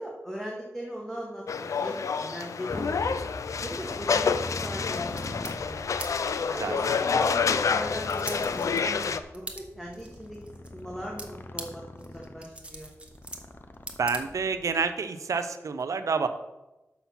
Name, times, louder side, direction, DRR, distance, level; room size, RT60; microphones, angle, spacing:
voice 1, 0.0-3.3 3.6-4.4 4.6-5.8 6.5-10.4 10.7-12.9, equal, 5° left, -3 dB, 1.7 m, -39 dB
sound 1, 1.5-9.2, left 5 dB, 85° left, 0.4 m, -28 dB
Motorcycle, 2.7-14.8, left 2 dB, 40° left, 0.7 m, -42 dB
sound 2, 4.8-14.7, right 1 dB, 20° right, 1.3 m, -45 dB
voice 2, 14.0-16.3, right 5 dB, 85° right, 9 dB, 0.6 m, -28 dB
7.0 x 5.9 x 5.7 m, 1.0 s
wide cardioid pair, 65°, 5 cm